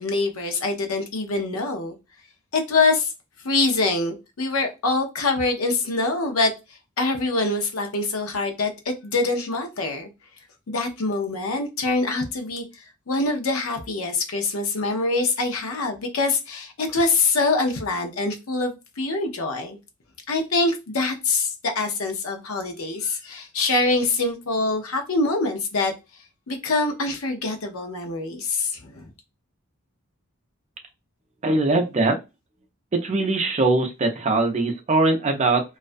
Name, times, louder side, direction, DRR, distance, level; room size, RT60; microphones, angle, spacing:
voice 1, 0.0-2.0 2.5-3.1 3.4-6.5 7.0-10.1 10.7-19.8 20.3-25.9 26.5-29.1, left 3 dB, 75° left, 0.6 m, -24 dB
voice 2, 31.4-32.2 32.9-35.6, right 2 dB, 30° right, 0.5 m, -21 dB
2.4 x 2.1 x 2.5 m
head